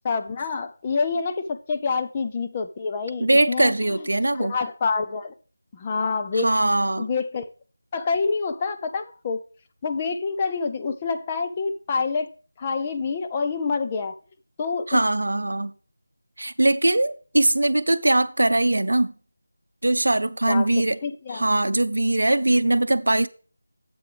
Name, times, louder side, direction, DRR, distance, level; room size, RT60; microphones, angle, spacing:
voice 1, 0.0-4.1 4.4-5.3 5.7-6.5 7.0-7.5 7.9-9.4 9.8-12.3 12.6-14.1 14.6-15.0 20.5-20.7 21.0-21.5, left 4 dB, 20° left, 0.6 m, -27 dB
voice 2, 3.2-4.5 6.3-7.1 14.9-15.7 16.4-19.1 19.8-21.0 21.3-23.3, right 2 dB, 65° right, 0.7 m, -21 dB
9.9 x 7.8 x 3.4 m
figure-of-eight pair, 165°, 0 cm